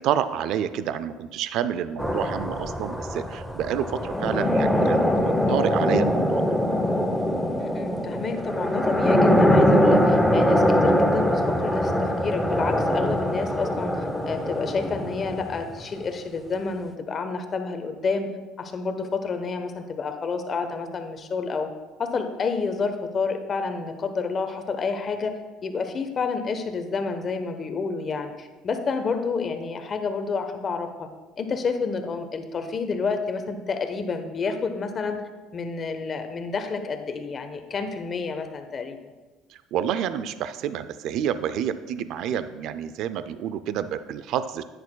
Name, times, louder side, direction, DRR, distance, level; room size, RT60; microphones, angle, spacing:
voice 1, 0.0-6.5 39.5-44.6, right 9 dB, 65° right, 12 dB, 0.4 m, -28 dB
sound 1, 2.0-15.8, equal, ahead, 0.7 m, -22 dB
voice 2, 7.6-14.0 14.3-18.3 18.6-21.7 22.0-25.3 25.6-31.1 31.4-35.2 35.5-39.0, left 4 dB, 35° left, 7 dB, 0.9 m, -29 dB
10.5 x 9.4 x 2.2 m, 1.2 s
supercardioid pair, 105°, 0 cm